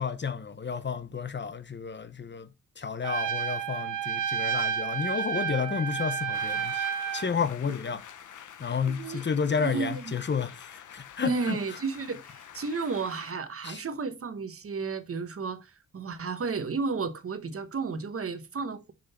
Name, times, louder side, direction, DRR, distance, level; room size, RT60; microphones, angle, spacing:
voice 1, 0.0-2.5 2.8-6.8 7.1-8.0 8.6-11.8 13.6-13.8, left 6 dB, 35° left, 0.8 m, -31 dB
Trumpet, 3.0-7.3, right 7 dB, 65° right, 0.7 m, -30 dB
sound 1, 6.3-13.3, left 9 dB, 65° left, 0.8 m, -47 dB
voice 2, 8.9-9.3 9.6-10.0 11.2-18.9, right 4 dB, 45° right, 1.1 m, -33 dB
6.7 x 3.9 x 4.3 m
cardioid pair, 75°, 33 cm